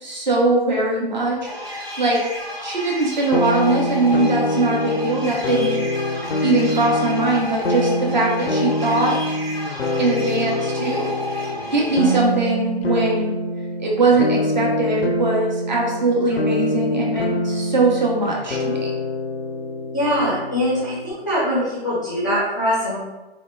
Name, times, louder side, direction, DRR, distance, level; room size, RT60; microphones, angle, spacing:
voice 1, 0.0-2.2 2.6-5.8 6.4-9.2 10.0-11.1 11.7-13.3 13.8-18.9, right 2 dB, 45° right, -2 dB, 0.9 m, -21 dB
sound 1, 1.5-12.1, equal, 75° right, 1.4 m, -32 dB
sound 2, 3.3-21.1, left 1 dB, 70° left, 0.5 m, -25 dB
voice 2, 19.9-23.0, equal, 20° left, -8 dB, 0.5 m, -22 dB
3.9 x 2.8 x 2.3 m, 1.0 s
figure-of-eight pair, 145°, 32 cm